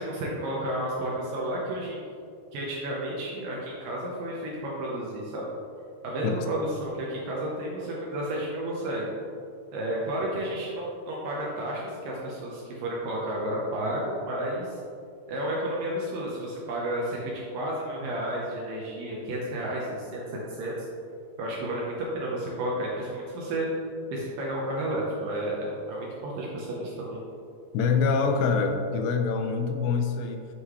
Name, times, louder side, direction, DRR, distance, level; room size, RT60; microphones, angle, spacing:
voice 1, 0.0-2.0 2.5-5.5 6.0-9.1 9.7-14.8 15.3-20.2 20.5-20.7 21.4-23.7 24.1-27.2, right 1 dB, 70° right, -4 dB, 2.2 m, -31 dB
voice 2, 27.7-30.5, left 5 dB, 85° left, 6 dB, 2.9 m, -25 dB
9.3 x 6.1 x 3.1 m, 2.4 s
omnidirectional pair, 4.8 m